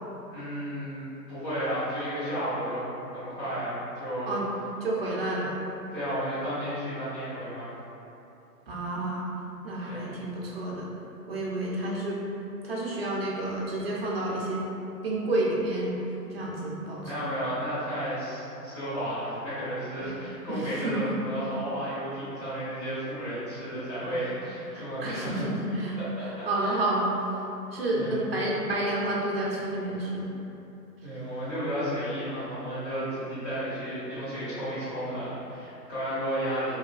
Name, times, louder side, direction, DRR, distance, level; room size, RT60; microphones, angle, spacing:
voice 1, 0.3-4.3 5.9-7.7 9.9-10.1 17.0-25.4 26.0-26.8 27.9-28.3 31.0-36.7, equal, 20° left, -13 dB, 0.8 m, -33 dB
voice 2, 4.8-5.5 8.7-9.3 9.6-10.9 11.3-12.2 12.6-14.6 15.0-15.9 16.3-17.3 20.5-21.2 24.7-26.0 26.2-27.1 27.7-30.3, right 1 dB, 40° right, -5 dB, 0.4 m, -30 dB
3.1 x 2.2 x 2.2 m, 2.8 s
figure-of-eight pair, 135°, 49 cm